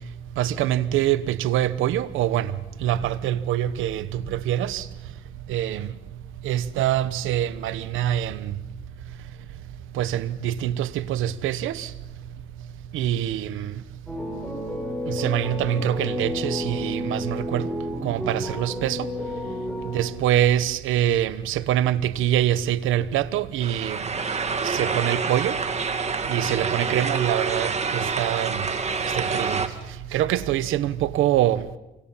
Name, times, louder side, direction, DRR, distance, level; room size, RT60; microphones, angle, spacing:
voice 1, 0.4-2.5 2.8-4.8 5.5-5.9 6.4-8.5 10.0-11.9 12.9-13.7 15.1-17.7 18.0-19.1 19.9-24.0 24.6-25.6 26.3-28.6 29.1-29.6 30.1-31.6, right 12 dB, 90° right, 1.1 m, -24 dB
sound 1, 14.1-20.5, left 1 dB, ahead, 7.1 m, -31 dB
sound 2, 23.6-29.7, right 4 dB, 35° right, 2.0 m, -27 dB
28.5 x 24.5 x 5.7 m
cardioid pair, 90°, 20 cm